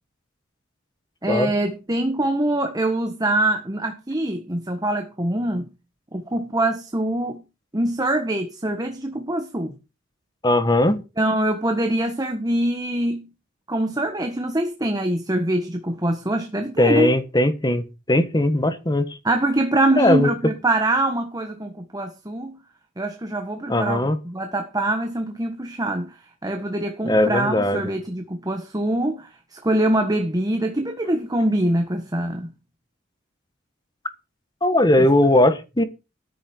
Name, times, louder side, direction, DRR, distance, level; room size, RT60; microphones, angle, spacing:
voice 1, 1.2-5.7 6.1-7.4 7.7-9.7 11.2-13.2 13.7-17.1 19.2-22.6 23.0-26.1 26.4-32.5 35.0-35.1, right 1 dB, 20° right, 1.5 m, -24 dB
voice 2, 10.4-11.0 16.8-19.1 19.9-20.3 23.7-24.2 27.0-27.9 34.6-35.8, left 1 dB, 20° left, 1.5 m, -19 dB
13.5 x 10.0 x 4.6 m
head